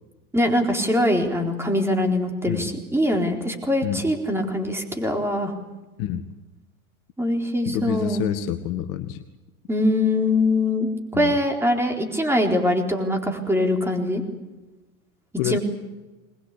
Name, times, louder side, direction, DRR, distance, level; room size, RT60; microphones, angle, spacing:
voice 1, 0.3-5.5 7.2-8.2 9.7-14.2 15.4-15.6, left 1 dB, 5° right, 2 dB, 4.1 m, -23 dB
voice 2, 3.8-4.1 6.0-6.3 7.6-9.2 11.1-11.3 15.4-15.6, left 10 dB, 45° left, 10 dB, 1.5 m, -27 dB
21.5 x 20.5 x 8.5 m, 1.1 s
hypercardioid pair, 105°, 43 cm